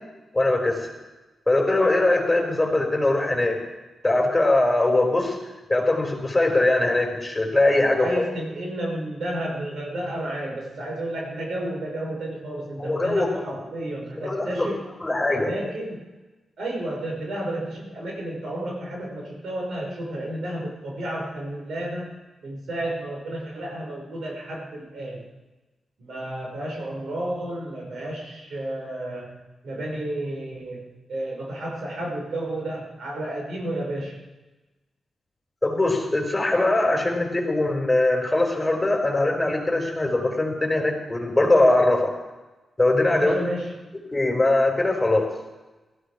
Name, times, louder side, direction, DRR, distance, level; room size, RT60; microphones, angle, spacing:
voice 1, 0.3-0.9 1.5-3.6 4.0-5.4 5.7-8.2 12.8-13.4 14.2-14.7 15.0-15.5 35.6-42.1 42.8-43.3 44.1-45.3, left 2 dB, 20° left, 1 dB, 4.9 m, -21 dB
voice 2, 8.0-14.8 15.3-16.0 16.6-25.2 26.0-34.2 43.1-43.7, right 1 dB, 75° right, -1 dB, 5.7 m, -32 dB
17.0 x 14.5 x 5.0 m, 1.1 s
cardioid pair, 60°, 0 cm